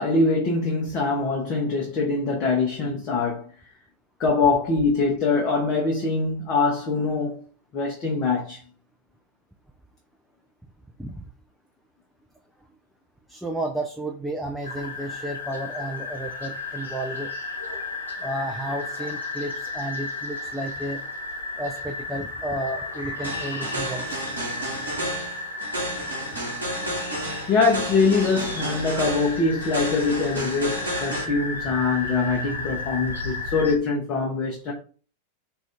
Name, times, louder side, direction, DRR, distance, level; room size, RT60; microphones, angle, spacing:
voice 1, 0.0-3.5 4.2-7.4 7.7-8.6 27.5-34.7, left 4 dB, 35° left, 0.7 m, -23 dB
voice 2, 13.3-17.3 18.2-21.1 21.6-24.2, right 1 dB, ahead, 0.4 m, -32 dB
sound 1, 14.6-33.7, left 3 dB, 75° left, 1.0 m, -34 dB
sound 2, 23.2-31.2, right 1 dB, 75° right, 1.0 m, -32 dB
2.6 x 2.4 x 3.5 m
figure-of-eight pair, 90°, 0 cm